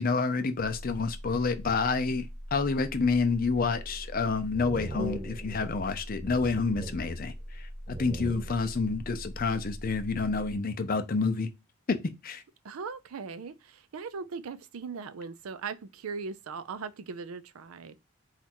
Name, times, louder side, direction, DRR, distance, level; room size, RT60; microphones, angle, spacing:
voice 1, 0.0-11.5 11.9-12.0 12.2-12.4, left 4 dB, 45° left, 0.5 m, -29 dB
sound 1, 0.6-10.6, equal, 5° right, 0.7 m, -42 dB
sound 2, 3.7-4.1 4.5-6.0 6.2-7.6 7.9-8.9, right 1 dB, 20° right, 0.3 m, -40 dB
voice 2, 12.6-18.0, right 5 dB, 85° right, 0.5 m, -39 dB
4.3 x 2.4 x 4.3 m
head